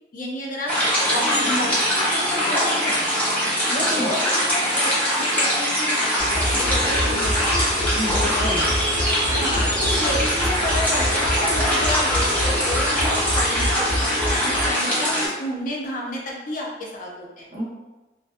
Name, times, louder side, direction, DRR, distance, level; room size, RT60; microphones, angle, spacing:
voice 1, 0.1-0.7 1.0-3.1 3.9-4.2 4.6-7.5 8.3-8.5 9.3-17.5, left 1 dB, 45° left, -2 dB, 0.5 m, -31 dB
sound 1, 0.7-15.3, equal, 10° left, 0.7 m, -22 dB
voice 2, 1.3-1.6 3.7-4.1 7.9-8.7 17.5-17.6, equal, 45° right, -2 dB, 0.5 m, -28 dB
sound 2, 6.2-14.7, equal, 90° left, 0.8 m, -27 dB
2.5 x 2.2 x 2.4 m, 1.1 s
head